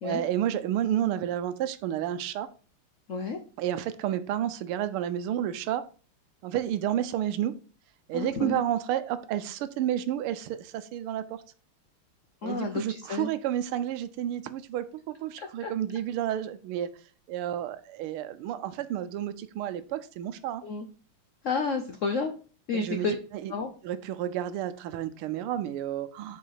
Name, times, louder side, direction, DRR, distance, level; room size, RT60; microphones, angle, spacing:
voice 1, 0.0-2.5 3.6-5.9 6.4-7.5 8.1-11.4 12.4-16.9 17.3-20.6 22.7-23.1 23.4-23.5 23.8-26.4, right 11 dB, 80° right, 13 dB, 1.5 m, -31 dB
voice 2, 3.1-3.4 8.1-8.6 12.4-13.3 15.4-15.7 20.6-20.9 21.4-22.3 22.7-23.1 23.5-23.7, left 4 dB, 80° left, 6 dB, 0.6 m, -31 dB
5.3 x 5.0 x 5.6 m, 0.38 s
omnidirectional pair, 2.4 m